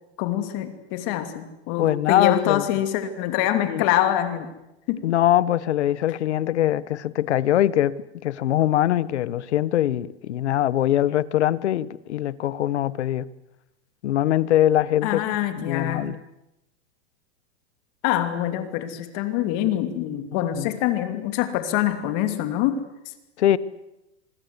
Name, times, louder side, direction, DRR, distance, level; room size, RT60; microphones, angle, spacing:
voice 1, 0.2-4.5 4.9-5.1 15.0-16.1 18.0-22.8, left 12 dB, 40° left, 2.7 m, -25 dB
voice 2, 1.8-2.6 3.7-3.9 5.0-13.2 14.0-15.2 15.6-16.2 20.5-20.8 23.4-23.6, left 12 dB, 85° left, 1.3 m, -22 dB
26.5 x 21.5 x 8.2 m
supercardioid pair, 160°, 33 cm